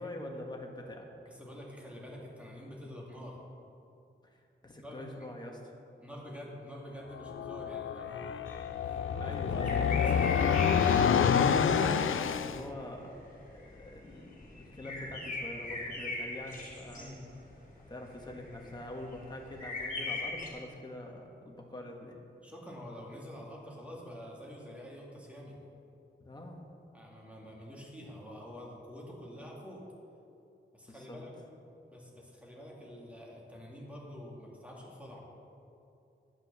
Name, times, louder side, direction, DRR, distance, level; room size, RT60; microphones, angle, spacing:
voice 1, 0.0-1.1 4.2-5.6 9.2-9.8 11.4-13.2 13.5-17.2 17.9-22.2 26.2-26.6 30.9-31.2, left 1 dB, 20° left, 0 dB, 1.5 m, -44 dB
voice 2, 1.3-3.4 4.8-5.3 6.0-8.5 8.8-9.5 9.8-10.6 16.9-17.2 22.4-25.5 26.9-29.8 30.7-31.3 31.9-35.3, equal, 5° right, -3 dB, 2.3 m, -47 dB
sound 1, 7.1-12.6, left 7 dB, 85° left, 0.5 m, -28 dB
sound 2, 8.5-20.5, left 3 dB, 40° left, 3.1 m, -41 dB
10.5 x 9.3 x 6.8 m, 2.7 s
wide cardioid pair, 170°, 20 cm